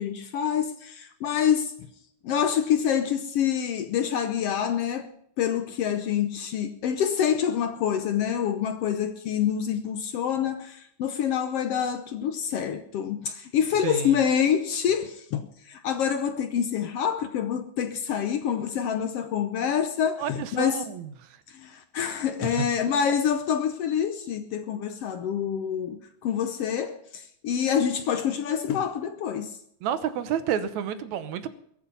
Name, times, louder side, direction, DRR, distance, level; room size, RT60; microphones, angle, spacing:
voice 1, 0.0-1.7 2.2-5.1 5.4-20.8 21.5-29.6, left 8 dB, 70° left, 1.6 m, -26 dB
voice 2, 13.8-14.2 20.2-21.3 22.4-22.7 29.8-31.5, right 9 dB, 75° right, 2.2 m, -30 dB
22.0 x 8.6 x 5.5 m
omnidirectional pair, 3.4 m